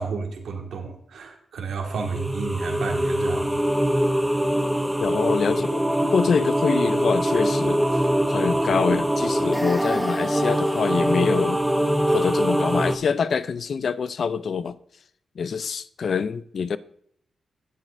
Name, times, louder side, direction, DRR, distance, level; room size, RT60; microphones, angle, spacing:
voice 1, 0.0-3.6 4.0-4.4, right 4 dB, 85° right, 1.9 m, -32 dB
sound 1, 1.9-13.0, equal, 5° right, 0.9 m, -23 dB
voice 2, 5.0-7.8 8.3-11.6 12.1-14.8 15.4-16.8, left 6 dB, 60° left, 0.5 m, -25 dB
17.0 x 7.5 x 2.6 m
cardioid pair, 95°, 0 cm